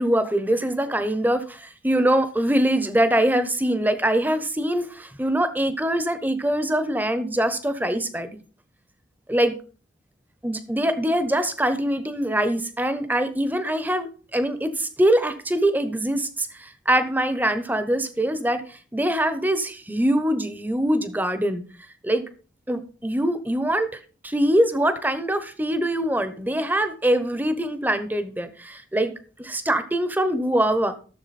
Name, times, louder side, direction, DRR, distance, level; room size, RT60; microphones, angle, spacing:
voice 1, 0.0-8.4 9.3-9.5 10.4-21.6 22.0-22.2 22.7-29.1 29.4-31.0, right 1 dB, 10° right, 0.7 m, -23 dB
13.0 x 7.1 x 4.2 m
head